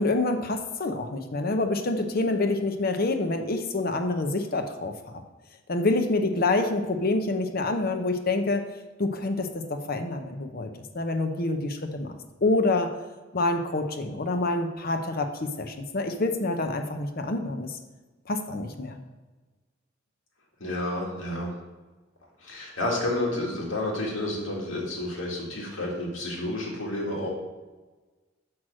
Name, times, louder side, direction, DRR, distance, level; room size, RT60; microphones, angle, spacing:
voice 1, 0.0-5.2 5.7-8.7 9.0-12.9 13.3-17.8 18.3-19.0, left 2 dB, 50° left, 5 dB, 0.8 m, -27 dB
voice 2, 20.6-21.5 22.4-27.3, left 1 dB, 85° left, -2 dB, 2.2 m, -30 dB
6.3 x 5.9 x 6.2 m, 1.3 s
head